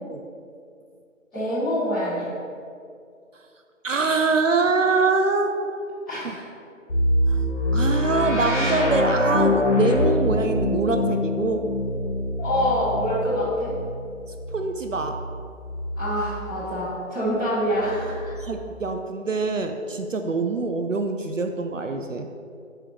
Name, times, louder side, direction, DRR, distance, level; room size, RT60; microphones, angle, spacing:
voice 1, 1.3-2.3 6.1-6.4 12.4-13.7 15.9-18.3, equal, ahead, -29 dB, 1.4 m, -25 dB
voice 2, 3.8-5.8 7.3-7.4 7.7-11.7 14.5-15.2 18.4-22.3, right 3 dB, 70° right, 6 dB, 0.6 m, -24 dB
sound 1, 6.9-16.7 17.7-18.8, left 1 dB, 60° left, 1.7 m, -25 dB
7.5 x 6.9 x 3.2 m, 2.4 s
figure-of-eight pair, 165°, 40 cm